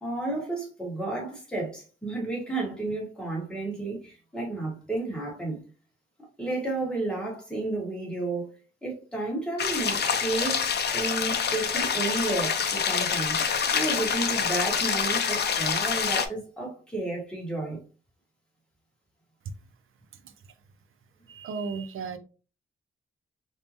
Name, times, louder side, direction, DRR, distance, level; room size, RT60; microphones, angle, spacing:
voice 1, 0.0-5.6 6.4-8.5 8.8-17.8, right 2 dB, 5° left, 1.5 m, -32 dB
sound 1, 9.6-16.3, left 6 dB, 55° left, 0.5 m, -26 dB
voice 2, 21.3-22.2, right 5 dB, 75° right, 0.5 m, -34 dB
3.6 x 2.8 x 2.8 m
wide cardioid pair, 140°, 21 cm